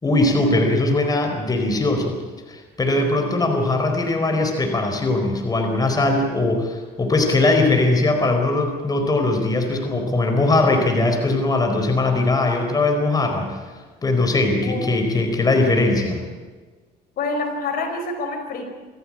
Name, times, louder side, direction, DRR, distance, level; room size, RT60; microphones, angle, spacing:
voice 1, 0.0-2.2 2.5-13.6 14.0-16.2, left 2 dB, 20° left, 3 dB, 4.6 m, -20 dB
voice 2, 17.2-18.7, left 3 dB, 60° left, 4 dB, 5.0 m, -27 dB
27.0 x 14.5 x 8.9 m, 1.4 s
cardioid pair, 110°, 17 cm